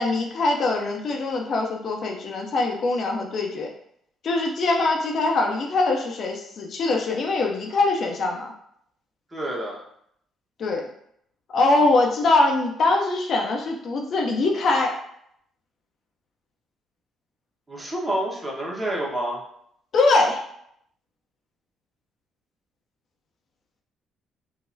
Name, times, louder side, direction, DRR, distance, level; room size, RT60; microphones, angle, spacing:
voice 1, 0.0-3.7 4.2-8.5 10.6-10.8 11.5-15.0 19.9-20.4, left 2 dB, 55° left, 1 dB, 0.5 m, -22 dB
voice 2, 9.3-9.8 17.7-19.4, right 1 dB, 25° right, -4 dB, 1.1 m, -28 dB
3.9 x 2.0 x 2.6 m, 0.71 s
hypercardioid pair, 50°, 0 cm